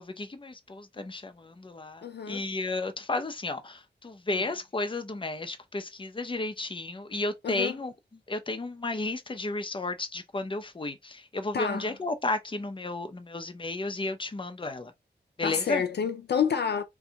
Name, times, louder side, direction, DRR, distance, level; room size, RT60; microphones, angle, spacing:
voice 1, 0.0-7.9 8.3-14.9 15.4-15.8, left 2 dB, 30° left, 0.6 m, -33 dB
voice 2, 2.0-2.4 4.3-4.4 7.4-7.7 11.5-11.9 15.4-16.8, left 7 dB, 65° left, 0.4 m, -29 dB
2.7 x 2.4 x 3.8 m
wide cardioid pair, 85°, 18 cm